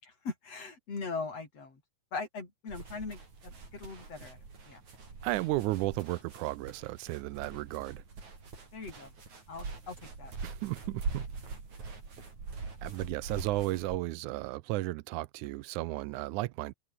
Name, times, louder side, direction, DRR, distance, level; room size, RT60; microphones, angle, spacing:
voice 1, 0.0-1.8 2.1-4.8 8.7-9.1 9.5-10.3, left 4 dB, 55° left, 6.0 m, -40 dB
sound 1, 2.7-14.0, right 4 dB, 70° right, 6.9 m, -43 dB
voice 2, 5.2-8.0 10.4-11.3 12.8-16.7, right 18 dB, 85° right, 2.1 m, -34 dB
omnidirectional pair, 3.5 m